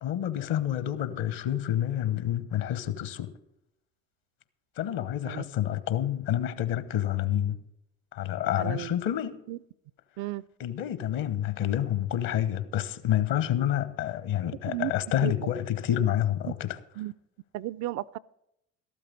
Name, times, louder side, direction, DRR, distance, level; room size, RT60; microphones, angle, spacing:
voice 1, 0.0-3.3 4.8-7.6 8.1-9.4 10.6-16.8, left 11 dB, 55° left, 1.2 m, -28 dB
voice 2, 8.5-8.9 9.5-9.6 10.2-10.4 14.7-14.9 15.2-15.3 17.0-17.1 17.5-18.2, right 16 dB, 50° right, 0.4 m, -33 dB
13.5 x 12.0 x 4.0 m
figure-of-eight pair, 55°, 40 cm